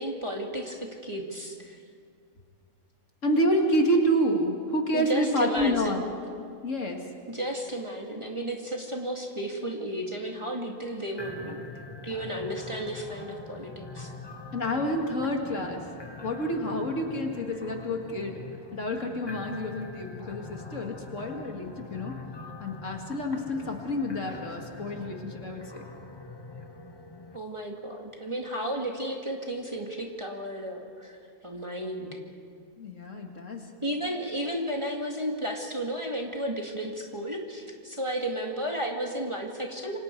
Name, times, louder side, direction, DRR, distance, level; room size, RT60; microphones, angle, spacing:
voice 1, 0.0-1.8 4.9-6.0 7.3-11.6 12.0-14.1 27.3-32.2 33.8-40.0, right 1 dB, 20° right, 0 dB, 2.0 m, -33 dB
voice 2, 3.2-6.0 6.6-7.0 14.5-15.9 16.2-18.4 18.7-22.1 22.6-25.8 32.8-33.6, equal, 55° left, 2 dB, 2.2 m, -28 dB
sound 1, 11.2-27.4, left 3 dB, 25° left, 0.6 m, -43 dB
27.5 x 25.5 x 4.6 m, 2.2 s
omnidirectional pair, 1.6 m